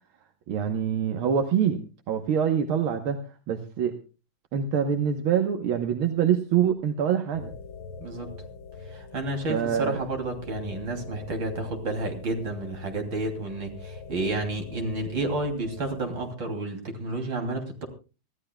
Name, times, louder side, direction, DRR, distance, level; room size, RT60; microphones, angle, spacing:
voice 1, 0.5-3.2 3.5-4.0 4.5-7.5 9.5-10.0, right 8 dB, 85° right, 5 dB, 2.0 m, -25 dB
sound 1, 7.3-16.3, left 4 dB, 85° left, 3.4 m, -43 dB
voice 2, 8.9-17.9, right 2 dB, 65° right, 4 dB, 3.8 m, -31 dB
25.0 x 14.5 x 2.3 m, 0.33 s
omnidirectional pair, 2.2 m